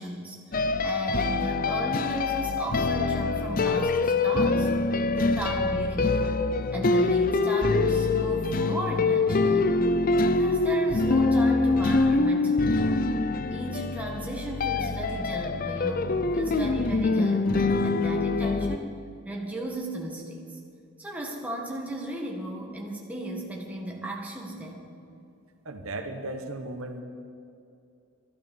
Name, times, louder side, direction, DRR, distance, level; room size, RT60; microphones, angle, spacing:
voice 1, 0.0-4.7 5.1-9.8 10.2-13.0 13.5-16.1 16.3-18.9 19.2-20.6 21.0-24.9, right 1 dB, 5° right, -1 dB, 1.6 m, -35 dB
sound 1, 0.5-18.8, left 3 dB, 40° left, 0.5 m, -24 dB
voice 2, 25.6-27.0, right 2 dB, 65° right, 6 dB, 1.1 m, -36 dB
12.0 x 12.0 x 7.1 m, 2.5 s
head